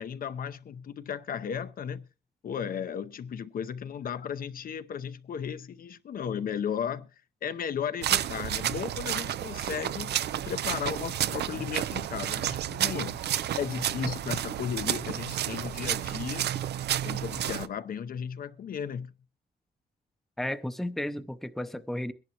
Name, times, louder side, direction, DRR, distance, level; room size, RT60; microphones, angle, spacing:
voice 1, 0.0-2.1 2.4-7.1 7.4-10.2 10.5-13.2 13.5-16.5 17.0-19.1, left 7 dB, 55° left, 0.7 m, -35 dB
sound 1, 8.0-17.7, right 11 dB, 80° right, 0.6 m, -31 dB
voice 2, 20.4-22.1, left 1 dB, ahead, 0.6 m, -33 dB
22.5 x 11.0 x 2.9 m
wide cardioid pair, 135°, 17 cm